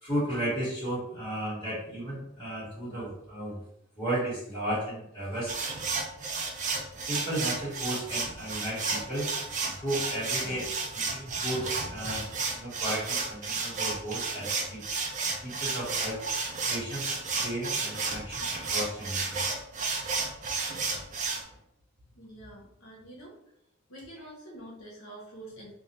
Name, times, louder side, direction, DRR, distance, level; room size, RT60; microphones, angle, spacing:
voice 1, 0.0-3.6 4.0-5.6 7.0-9.3 9.8-12.2 12.5-14.8 15.4-16.3 16.7-19.6 21.2-21.5, right 1 dB, 20° left, -8 dB, 1.1 m, -34 dB
sound 1, 5.5-21.4, right 4 dB, 35° right, 0.3 m, -32 dB
voice 2, 22.1-23.4 23.9-25.7, right 1 dB, 70° left, -3 dB, 0.7 m, -46 dB
2.3 x 2.0 x 2.9 m, 0.78 s
head